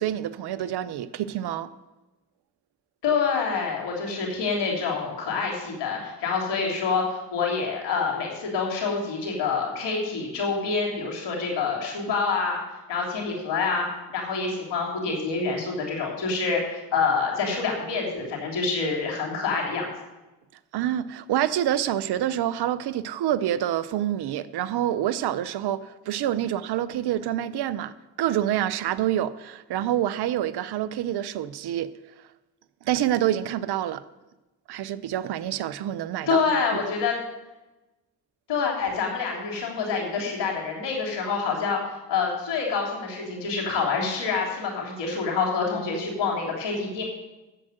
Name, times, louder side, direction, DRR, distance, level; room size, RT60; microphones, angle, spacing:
voice 1, 0.0-1.7 20.7-31.9 32.8-34.0 34.7-36.4 36.7-36.8, right 11 dB, 60° right, 0.7 m, -27 dB
voice 2, 3.0-12.6 12.9-13.9 14.1-19.9 36.3-37.2 38.5-47.0, left 5 dB, 70° left, 3.1 m, -27 dB
7.7 x 7.5 x 7.8 m
hypercardioid pair, 45°, 44 cm